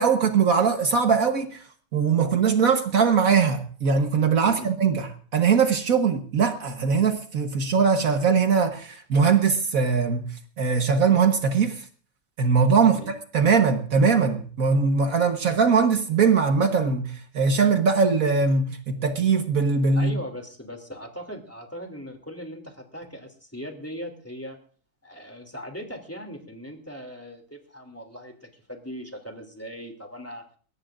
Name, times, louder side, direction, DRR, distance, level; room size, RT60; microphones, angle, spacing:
voice 1, 0.0-1.6 1.9-5.1 5.3-10.3 10.6-11.8 12.4-20.2, right 5 dB, 65° right, 1.6 m, -21 dB
voice 2, 19.9-24.6 25.0-30.4, equal, 10° left, 2.8 m, -39 dB
22.0 x 18.0 x 2.5 m
omnidirectional pair, 1.7 m